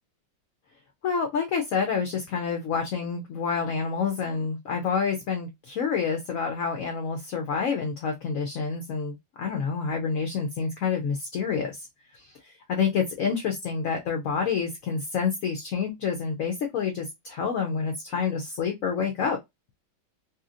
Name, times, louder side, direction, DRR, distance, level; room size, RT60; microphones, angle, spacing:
voice 1, 1.0-11.9 12.1-19.4, left 6 dB, 65° left, 0.8 m, -28 dB
2.9 x 2.7 x 2.4 m
omnidirectional pair, 1.9 m